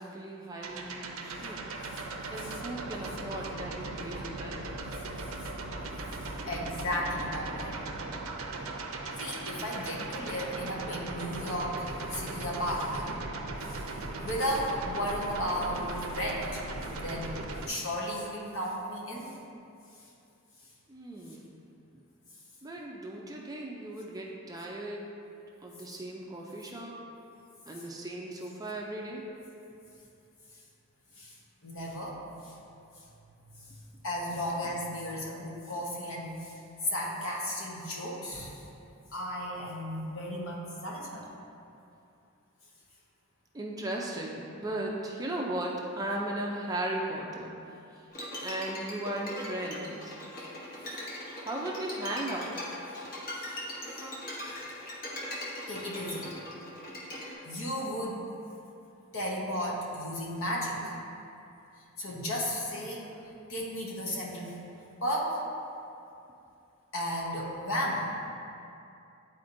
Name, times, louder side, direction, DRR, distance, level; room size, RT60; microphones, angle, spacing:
voice 1, 0.0-1.7 2.3-4.7 20.9-21.6 22.6-25.1 25.6-27.0 27.7-29.3 43.5-47.5 48.4-50.1 51.4-52.5, right 1 dB, 15° right, -2 dB, 0.4 m, -37 dB
sound 1, 0.6-17.7, right 2 dB, 70° right, 0.6 m, -38 dB
voice 2, 6.2-7.7 9.2-13.2 13.7-13.8 14.2-16.6 16.9-19.3 31.2-31.3 31.6-32.2 32.4-32.5 33.6-33.7 34.0-36.6 36.9-38.6 39.1-41.2 53.5-53.6 55.7-56.3 57.4-58.2 59.1-60.9 62.0-63.1 63.5-64.6 65.0-65.4 66.9-68.3, equal, 60° left, -3 dB, 1.1 m, -34 dB
Bowed string instrument, 48.1-57.3, left 1 dB, 40° left, 1.0 m, -40 dB
9.7 x 4.3 x 2.6 m, 2.7 s
head